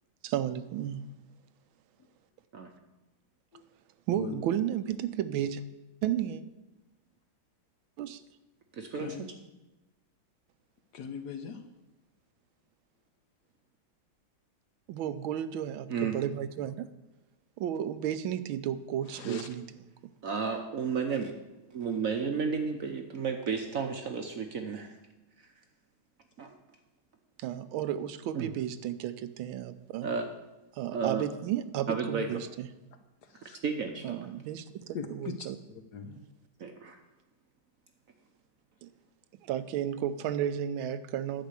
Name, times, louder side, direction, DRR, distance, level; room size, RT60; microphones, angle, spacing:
voice 1, 0.2-1.0 4.1-5.6 6.0-6.4 8.0-8.2 14.9-16.9 17.6-19.7 27.4-30.1 30.7-32.7 34.0-34.6 35.1-35.6 36.0-36.2 38.8-38.9 39.5-41.5, right 10 dB, 80° right, 12 dB, 1.4 m, -33 dB
voice 2, 8.7-9.3 15.9-16.2 19.3-19.4 20.2-21.3 21.7-24.9 26.4-26.5 28.3-28.5 30.0-30.3 30.9-31.3 31.9-32.4 33.6-34.3 36.6-37.0, right 5 dB, 60° right, 5 dB, 1.0 m, -32 dB
voice 3, 10.9-11.6 19.1-19.5 33.2-33.6 34.9-36.1, left 6 dB, 65° left, 7 dB, 1.2 m, -41 dB
10.5 x 5.1 x 8.2 m, 1.0 s
omnidirectional pair, 2.2 m